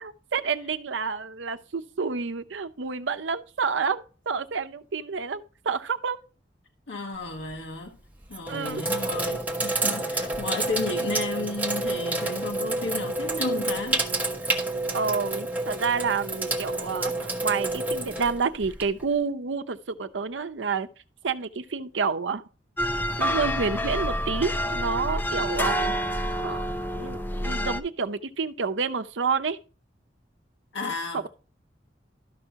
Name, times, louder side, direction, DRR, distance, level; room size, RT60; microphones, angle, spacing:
voice 1, 0.0-6.2 8.5-8.8 14.9-20.9 21.2-22.4 23.2-25.9 26.4-26.6 27.0-29.6, right 5 dB, 80° right, 0.7 m, -29 dB
voice 2, 6.9-8.0 8.3-14.1 30.7-31.3, left 3 dB, 80° left, 1.1 m, -33 dB
Sink (filling or washing), 7.2-7.6 8.2-19.1, right 2 dB, 10° right, 1.2 m, -29 dB
sound 1, 22.8-27.8, equal, 10° left, 0.4 m, -28 dB
13.0 x 5.6 x 2.9 m
head